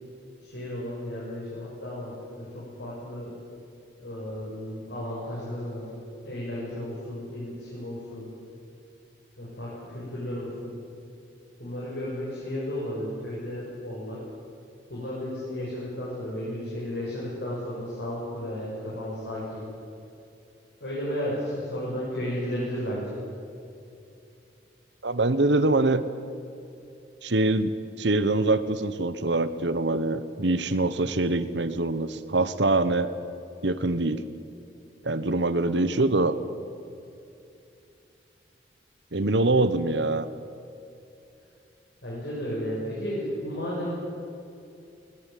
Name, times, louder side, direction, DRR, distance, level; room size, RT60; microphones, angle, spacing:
voice 1, 0.4-3.3 4.0-5.9 6.2-8.3 9.4-10.7 11.6-14.2 14.9-19.6 20.8-23.2 39.4-39.6 42.0-43.9, equal, 75° left, -7 dB, 7.2 m, -33 dB
voice 2, 25.0-26.0 27.2-27.7 28.0-33.1 33.6-34.2 35.0-36.4 39.1-40.3, right 2 dB, 80° right, 13 dB, 1.2 m, -24 dB
20.5 x 20.0 x 9.4 m, 2.7 s
head